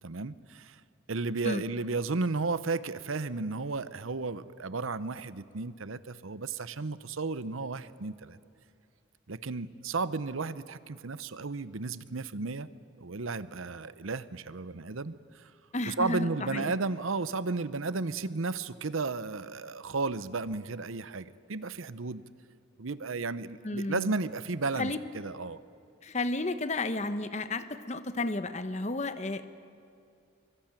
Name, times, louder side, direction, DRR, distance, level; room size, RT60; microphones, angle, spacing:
voice 1, 0.0-0.8 1.1-8.4 9.3-12.7 13.0-15.5 15.9-22.2 22.8-25.6, right 3 dB, 85° right, 15 dB, 0.8 m, -33 dB
voice 2, 15.7-16.7 23.6-24.1 24.8-25.0 26.0-29.4, left 2 dB, 35° left, 11 dB, 1.0 m, -32 dB
23.5 x 23.5 x 9.1 m, 2.5 s
head